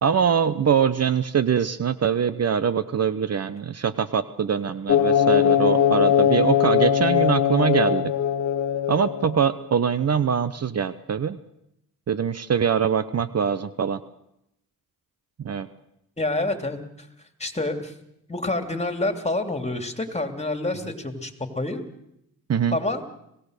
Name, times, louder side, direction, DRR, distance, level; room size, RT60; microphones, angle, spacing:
voice 1, 0.0-8.1 8.9-11.4 12.1-14.0 15.4-15.7 22.5-22.8, right 7 dB, 45° right, 14 dB, 0.9 m, -23 dB
sound 1, 4.9-9.6, left 9 dB, 50° left, 1.1 m, -20 dB
voice 2, 16.2-17.1 17.4-17.9 18.3-21.8 22.7-23.0, left 2 dB, 20° left, 6 dB, 3.2 m, -28 dB
27.0 x 17.5 x 6.7 m, 0.81 s
supercardioid pair, 65°, 36 cm